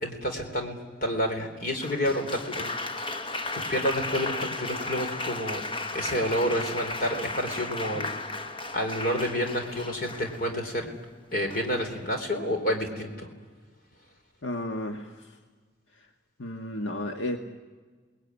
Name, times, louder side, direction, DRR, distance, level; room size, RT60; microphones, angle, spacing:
voice 1, 0.0-3.2 3.7-5.6 5.9-8.1 8.4-8.5 8.7-10.9 11.3-13.3, equal, 45° left, 4 dB, 3.8 m, -29 dB
Applause, 1.8-10.7 11.5-11.9, left 2 dB, 25° left, 1.0 m, -35 dB
voice 2, 14.4-15.3 16.4-17.4, left 1 dB, 80° left, 4 dB, 1.6 m, -33 dB
29.0 x 20.0 x 9.7 m, 1.4 s
head